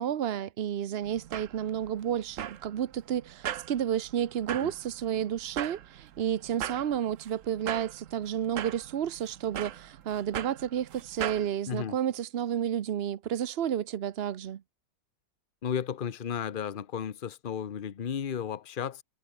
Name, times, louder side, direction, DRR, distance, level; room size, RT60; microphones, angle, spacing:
voice 1, 0.0-14.6, right 9 dB, 80° right, 0.5 m, -31 dB
sound 1, 1.0-11.5, right 11 dB, 60° right, 0.9 m, -40 dB
sound 2, 8.4-13.2, right 1 dB, 40° right, 7.8 m, -69 dB
voice 2, 11.7-12.0 15.6-19.0, left 8 dB, 45° left, 0.7 m, -34 dB
omnidirectional pair, 2.0 m